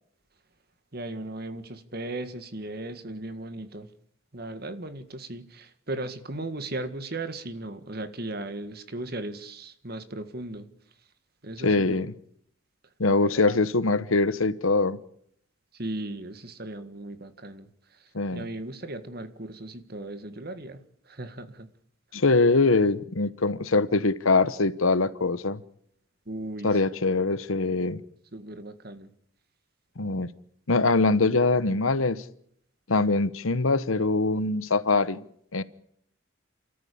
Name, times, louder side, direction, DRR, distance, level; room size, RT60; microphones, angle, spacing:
voice 1, 0.9-3.9 4.3-10.7 11.4-12.0 13.2-13.6 15.7-18.0 18.3-20.8 21.1-21.7 26.3-26.9 28.3-29.1, right 2 dB, 50° right, 1.8 m, -37 dB
voice 2, 11.6-12.1 13.0-15.0 18.1-18.5 22.1-25.6 26.6-28.0 30.0-30.3 30.7-32.2 32.9-35.2 35.5-35.6, left 3 dB, 80° left, 1.1 m, -23 dB
29.5 x 14.0 x 8.6 m
head